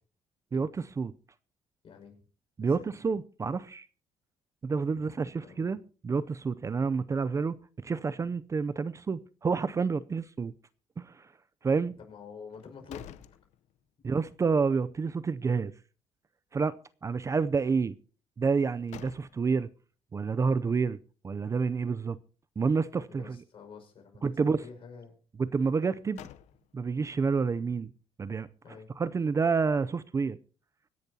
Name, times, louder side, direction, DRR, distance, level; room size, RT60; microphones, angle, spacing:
voice 1, 1.8-2.2 2.6-2.9 4.9-5.7 11.8-13.3 23.1-25.2 28.6-29.0, left 5 dB, 50° left, 5.5 m, -48 dB
voice 2, 2.6-3.9 4.6-10.5 11.0-11.3 11.6-11.9 14.0-15.7 16.5-18.0 18.4-19.7 20.1-21.0 21.2-22.2 22.6-23.4 24.2-24.6 25.4-26.2 26.7-27.9 28.2-28.5 29.0-30.4, right 5 dB, 25° right, 0.5 m, -29 dB
sound 1, 12.5-14.1 14.5-14.6 18.4-19.7 25.7-27.0, left 12 dB, 80° left, 0.8 m, -50 dB
25.0 x 10.5 x 2.8 m
cardioid pair, 120°, 12 cm